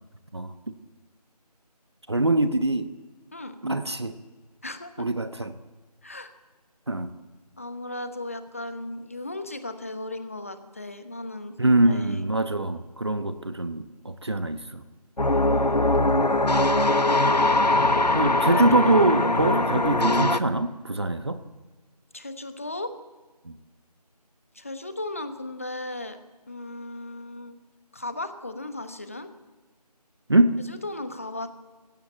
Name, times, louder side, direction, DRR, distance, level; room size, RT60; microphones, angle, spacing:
voice 1, 2.1-2.9 3.6-4.2 5.0-5.6 6.9-7.1 11.6-14.8 16.1-16.3 18.1-21.4 23.4-23.6 30.3-30.6, right 2 dB, 40° right, 10 dB, 1.1 m, -23 dB
voice 2, 4.6-5.1 6.0-6.3 7.6-12.2 15.3-16.0 18.5-18.9 19.4-19.6 22.1-22.9 24.5-26.2 26.5-27.5 27.9-29.3 30.7-31.5, left 2 dB, 20° left, 10 dB, 1.1 m, -36 dB
sound 1, 15.2-20.4, left 2 dB, 80° left, 1.3 m, -21 dB
24.0 x 16.0 x 9.0 m, 1.2 s
figure-of-eight pair, 165°, 21 cm